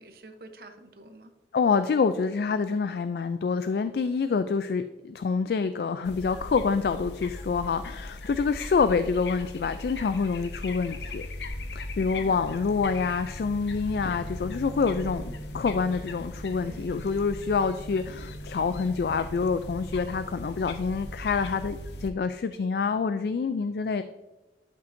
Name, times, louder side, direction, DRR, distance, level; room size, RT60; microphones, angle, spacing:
voice 1, 0.0-1.3 16.5-17.2, right 1 dB, 60° right, 7 dB, 0.8 m, -48 dB
voice 2, 1.5-11.3 11.7-15.2 15.5-24.0, left 5 dB, 60° left, 11 dB, 0.3 m, -27 dB
sound 1, 6.0-22.1, left 1 dB, 80° left, 0.7 m, -39 dB
12.0 x 5.6 x 2.6 m, 1.1 s
head